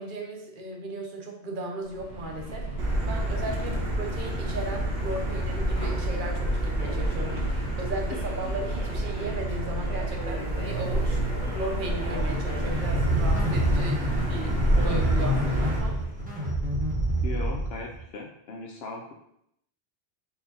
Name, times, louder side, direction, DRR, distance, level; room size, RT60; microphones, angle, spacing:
voice 1, 0.0-3.7 4.0-7.4 7.8-11.2 11.5-16.0, right 1 dB, 55° right, 1 dB, 0.8 m, -36 dB
Subway metro underground, 1.8-16.2, right 1 dB, 40° left, 1.8 m, -34 dB
Motor vehicle (road), 2.8-15.8, right 1 dB, 70° right, 1.1 m, -30 dB
voice 2, 3.5-3.8 17.2-19.1, left 3 dB, 70° left, 0 dB, 0.8 m, -38 dB
sound 1, 12.2-18.0, right 1 dB, 10° right, 0.9 m, -27 dB
4.3 x 3.5 x 2.8 m, 0.75 s
omnidirectional pair, 1.1 m